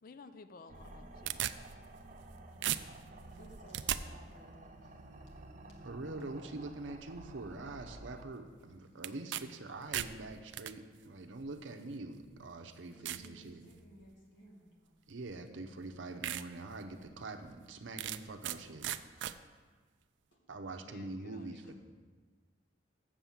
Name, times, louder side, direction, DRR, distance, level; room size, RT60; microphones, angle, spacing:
voice 1, 0.0-1.4 20.8-21.5, left 4 dB, 50° left, 11 dB, 0.4 m, -54 dB
sound 1, 0.7-8.2, right 1 dB, 40° right, 0.8 m, -51 dB
sound 2, 0.8-2.3 2.6-4.0 9.0-9.4 9.7-10.7 11.6-11.7 12.3-12.4 13.1-13.3 13.8-14.1 15.3-15.4 15.8-15.9 16.2-16.4 16.9-17.0 18.0-18.6 18.8-19.3, right 12 dB, 70° right, 0.4 m, -37 dB
voice 2, 3.3-5.0 12.9-14.9 18.5-18.6 20.3-20.4, right 1 dB, 70° left, -2 dB, 2.2 m, -58 dB
voice 3, 5.8-13.6 15.1-18.9 20.5-21.7, right 2 dB, 85° right, 5 dB, 0.8 m, -44 dB
7.3 x 7.0 x 7.1 m, 1.4 s
head